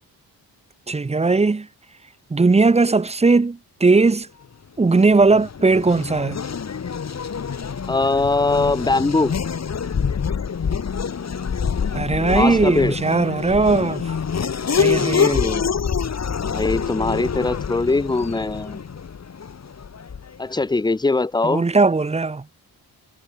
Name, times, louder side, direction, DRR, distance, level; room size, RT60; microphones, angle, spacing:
voice 1, 0.9-1.7 2.3-4.3 4.8-6.4 11.9-14.1 14.8-15.4 21.4-22.4, right 3 dB, 15° right, 0.9 m, -18 dB
Race car auto racing / Accelerating revving vroom, 4.8-20.5, left 6 dB, 40° left, 4.2 m, -26 dB
voice 2, 7.9-9.3 12.3-13.0 15.1-15.7 16.5-18.8 20.4-21.6, left 3 dB, 10° left, 0.8 m, -21 dB
wide cardioid pair, 155°, 39 cm